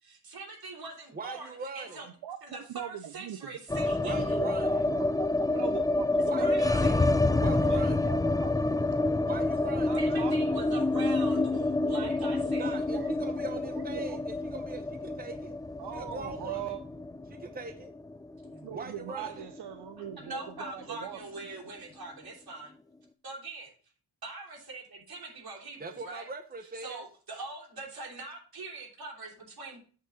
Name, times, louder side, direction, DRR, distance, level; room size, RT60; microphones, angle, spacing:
voice 1, 0.0-2.1 2.4-4.4 6.4-7.1 10.0-12.8 18.4-18.8 20.2-22.7 23.2-23.7 24.2-26.3 26.8-29.8, right 3 dB, 65° right, -2 dB, 3.1 m, -43 dB
voice 2, 1.1-2.1 4.0-4.8 6.2-7.0 7.4-8.1 9.2-10.0 12.6-15.6 15.9-16.6 17.3-17.9 18.7-19.5 25.8-27.0, right 3 dB, 25° right, 6 dB, 0.8 m, -41 dB
voice 3, 2.7-3.4 4.1-6.5 7.4-8.8 9.9-12.3 12.9-13.1 13.7-14.2 15.8-16.8 18.6-21.2, right 10 dB, 85° right, 9 dB, 0.6 m, -41 dB
sound 1, 3.7-19.8 20.1-20.2 20.4-21.1, left 2 dB, 10° left, 0.4 m, -28 dB
8.1 x 3.8 x 6.3 m, 0.40 s
wide cardioid pair, 85°, 40 cm